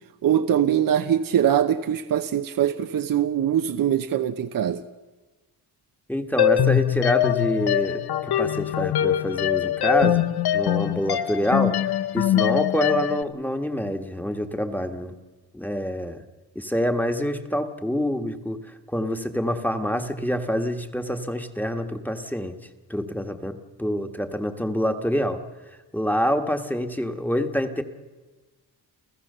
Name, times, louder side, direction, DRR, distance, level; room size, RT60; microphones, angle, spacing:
voice 1, 0.2-4.8, right 10 dB, 55° right, 0.9 m, -22 dB
voice 2, 6.1-10.2 10.5-11.8 12.1-15.1 15.5-16.2 16.5-18.6 18.9-22.6 22.9-25.4 25.9-27.8, equal, 5° left, 1.5 m, -26 dB
sound 1, 6.4-13.2, left 11 dB, 70° left, 0.8 m, -23 dB
29.5 x 15.0 x 6.8 m
cardioid pair, 115°, 40 cm